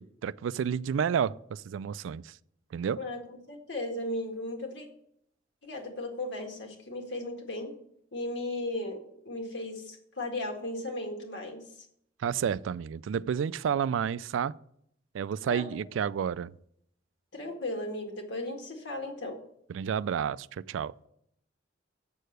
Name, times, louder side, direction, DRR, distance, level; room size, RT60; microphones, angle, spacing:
voice 1, 0.0-2.3 2.7-3.0 12.2-14.5 15.1-16.5 19.7-20.9, right 7 dB, 85° right, 0.3 m, -30 dB
voice 2, 2.9-4.9 5.6-7.7 8.1-9.0 9.3-11.9 15.5-15.6 17.3-19.3, left 1 dB, 65° left, 1.8 m, -36 dB
7.8 x 6.6 x 6.5 m
head